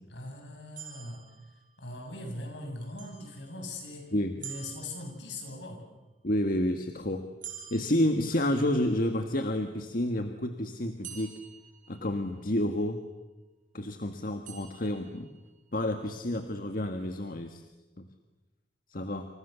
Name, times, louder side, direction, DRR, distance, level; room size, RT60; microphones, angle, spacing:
voice 1, 0.1-1.2 1.8-4.1 4.4-5.9, left 1 dB, 70° left, 3 dB, 7.9 m, -40 dB
sound 1, 0.8-2.1 3.0-3.9 4.4-5.6 7.4-8.9 11.0-12.6 14.4-15.6, right 8 dB, 45° right, 6.4 m, -48 dB
voice 2, 6.2-7.2 7.7-11.3 11.9-13.0 13.7-15.3 15.7-17.6 18.0-18.1 18.9-19.3, left 1 dB, 50° left, 6 dB, 1.7 m, -29 dB
29.5 x 28.5 x 7.0 m, 1.1 s
head